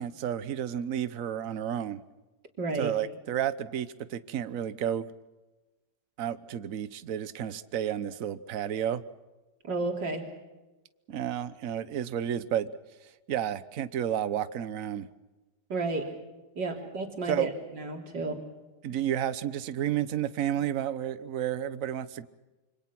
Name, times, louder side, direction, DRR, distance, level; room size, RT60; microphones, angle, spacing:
voice 1, 0.0-2.0 2.8-5.1 6.2-9.0 11.1-12.7 13.3-15.1 17.3-17.5 18.8-22.3, right 10 dB, 55° right, 14 dB, 1.2 m, -31 dB
voice 2, 2.6-2.9 9.6-10.3 15.7-16.1 16.6-18.4, right 3 dB, 90° right, 2 dB, 3.9 m, -32 dB
26.5 x 25.0 x 6.0 m, 1.1 s
omnidirectional pair, 1.9 m